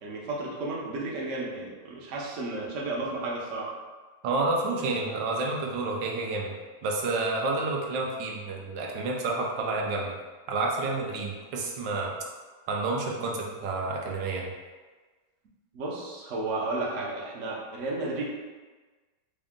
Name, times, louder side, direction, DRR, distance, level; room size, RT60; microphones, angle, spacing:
voice 1, 0.0-3.7 15.7-18.2, right 2 dB, 55° right, -3 dB, 0.9 m, -33 dB
voice 2, 4.2-6.5 6.8-10.1 10.5-12.1 12.7-14.5, right 3 dB, 90° right, -1 dB, 1.3 m, -29 dB
3.6 x 2.6 x 3.6 m, 1.3 s
omnidirectional pair, 1.9 m